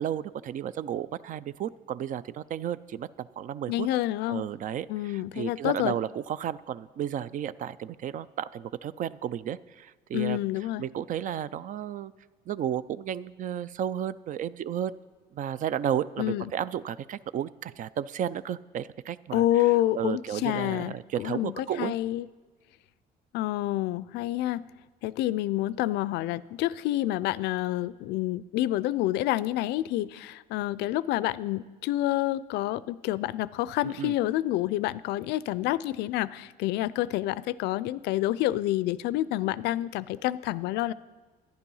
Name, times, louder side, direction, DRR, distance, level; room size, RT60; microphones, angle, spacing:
voice 1, 0.0-3.9 4.3-10.4 10.8-12.1 12.5-14.9 15.3-19.4 19.9-21.9 33.8-34.1, right 10 dB, 50° right, 18 dB, 0.4 m, -33 dB
voice 2, 3.7-4.5 4.9-5.9 10.1-10.9 16.2-16.5 19.3-22.3 23.3-24.7 25.0-40.9, left 15 dB, 85° left, 19 dB, 0.4 m, -28 dB
11.5 x 10.5 x 5.5 m, 1.3 s
cardioid pair, 110°, 17 cm